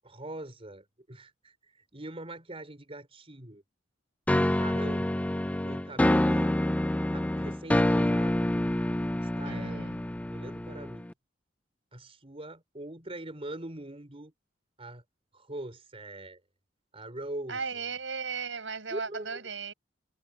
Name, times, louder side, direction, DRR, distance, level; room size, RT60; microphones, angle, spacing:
voice 1, 0.0-3.6 4.3-5.1 5.6-6.5 7.0-8.5 9.2-9.9 10.3-11.1 11.9-14.3 14.8-15.0 15.3-16.4 16.9-17.6 18.9-19.4, right 1 dB, 30° right, 4.7 m, -42 dB
sound 1, 4.3-11.1, left 1 dB, 5° left, 0.4 m, -27 dB
voice 2, 9.4-10.0 17.5-19.7, right 5 dB, 70° right, 6.4 m, -36 dB
head